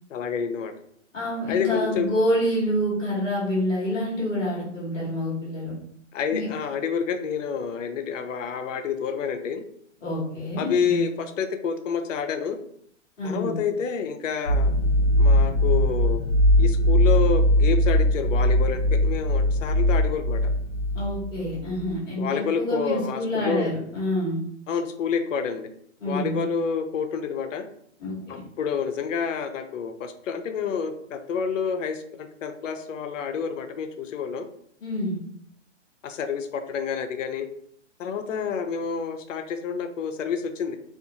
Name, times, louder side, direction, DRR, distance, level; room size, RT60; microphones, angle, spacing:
voice 1, 0.1-0.7 1.5-2.1 6.1-9.6 10.6-12.6 13.2-14.7 15.2-16.2 16.6-20.5 22.2-23.7 24.7-25.7 26.1-27.7 28.3-34.5 36.0-37.5 38.0-40.8, left 6 dB, 80° left, 8 dB, 0.5 m, -28 dB
voice 2, 1.1-5.7 6.3-6.5 10.0-11.0 13.2-13.5 20.9-24.4 26.0-26.4 28.0-28.4 34.8-35.2, equal, 5° left, -23 dB, 0.4 m, -27 dB
sound 1, 14.5-21.6, equal, 40° left, 0.9 m, -20 dB
2.7 x 2.4 x 2.5 m, 0.67 s
hypercardioid pair, 175°, 37 cm